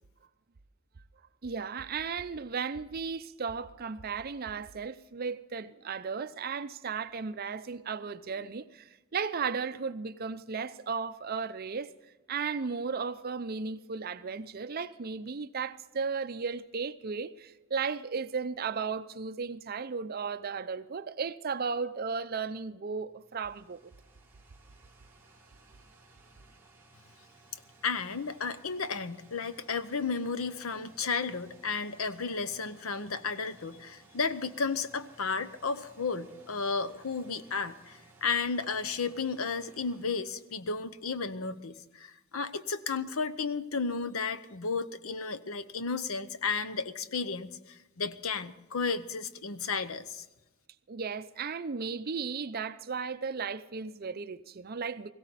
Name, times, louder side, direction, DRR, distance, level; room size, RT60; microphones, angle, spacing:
voice 1, 1.4-11.9 12.3-23.8 50.9-55.1, right 5 dB, 45° right, 0.6 m, -35 dB
sound 1, 23.0-41.1, right 3 dB, 10° right, 2.2 m, -59 dB
voice 2, 27.8-50.2, left 4 dB, 80° left, 0.8 m, -33 dB
18.0 x 16.5 x 4.1 m
head